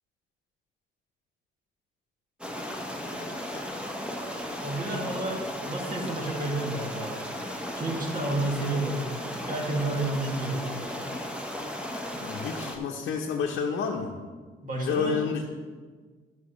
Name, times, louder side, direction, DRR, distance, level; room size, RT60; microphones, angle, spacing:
sound 1, 2.4-12.8, equal, 5° right, 1.1 m, -35 dB
voice 1, 3.0-3.9 12.2-14.1 14.8-15.5, left 5 dB, 75° left, 0 dB, 0.8 m, -31 dB
voice 2, 4.6-9.0 9.5-10.7 14.6-15.2, right 2 dB, 40° right, -1 dB, 2.3 m, -31 dB
13.0 x 6.0 x 3.1 m, 1.5 s
cardioid pair, 90°, 20 cm